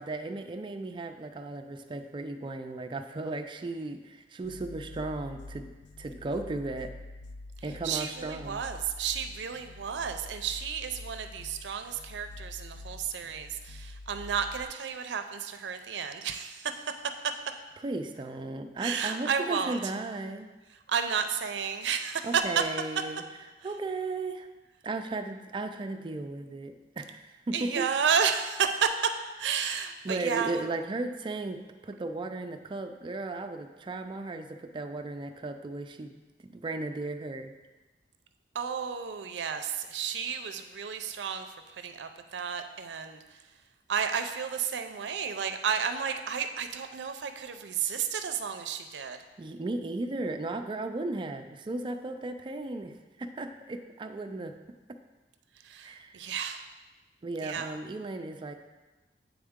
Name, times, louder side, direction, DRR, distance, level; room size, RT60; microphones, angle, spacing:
voice 1, 0.0-5.7 6.0-6.9 7.6-8.6 17.8-20.5 22.2-23.2 23.6-24.5 24.8-27.8 30.0-37.5 49.4-52.9 53.2-54.6 55.8-56.2 57.2-58.5, right 2 dB, 30° right, 6 dB, 0.4 m, -35 dB
sound 1, 4.4-14.6, left 2 dB, 85° left, 0.4 m, -46 dB
voice 2, 7.8-16.7 18.8-19.8 20.9-22.4 27.5-28.9 29.4-30.6 38.5-41.5 41.8-43.2 43.9-49.2 55.6-56.7 57.4-57.7, right 7 dB, 85° right, 8 dB, 0.5 m, -32 dB
8.8 x 3.6 x 3.6 m, 1.2 s
head